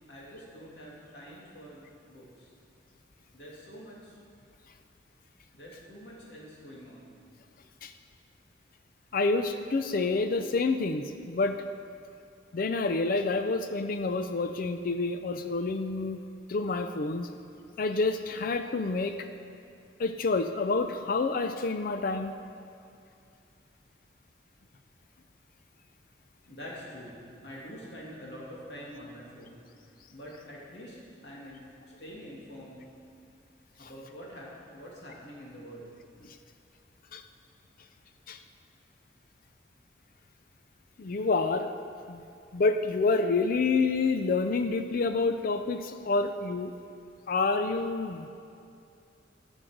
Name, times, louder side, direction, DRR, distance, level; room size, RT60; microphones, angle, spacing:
voice 1, 0.1-2.5 3.3-4.2 5.5-7.1 26.5-27.2 27.4-29.6 30.1-31.0 31.2-31.6 32.0-32.8 33.8-35.9, equal, 70° left, -5 dB, 2.7 m, -46 dB
voice 2, 9.1-11.6 12.5-16.2 16.5-17.3 17.8-19.2 20.0-22.3 33.8-33.9 36.2-36.4 37.1-37.2 38.3-38.4 41.0-41.7 42.1-42.2 42.5-46.7 47.3-48.3, left 3 dB, 50° left, 8 dB, 0.4 m, -28 dB
11.5 x 6.3 x 6.5 m, 2.5 s
head